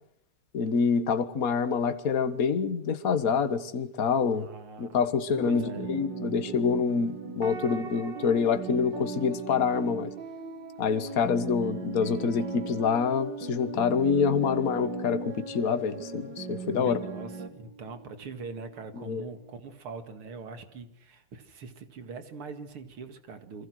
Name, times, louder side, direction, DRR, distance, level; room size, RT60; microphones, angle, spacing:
voice 1, 0.5-4.5 4.8-10.1 10.8-17.0 19.0-19.2, left 6 dB, 45° left, 11 dB, 1.7 m, -26 dB
voice 2, 4.3-5.1 5.4-5.9 16.4-23.7, right 4 dB, 75° right, 9 dB, 3.0 m, -43 dB
sound 1, 5.3-17.5, right 3 dB, 55° right, 2.5 m, -38 dB
sound 2, 5.4-19.6, right 2 dB, 60° left, 2.8 m, -49 dB
28.0 x 23.5 x 6.4 m, 0.71 s
omnidirectional pair, 2.4 m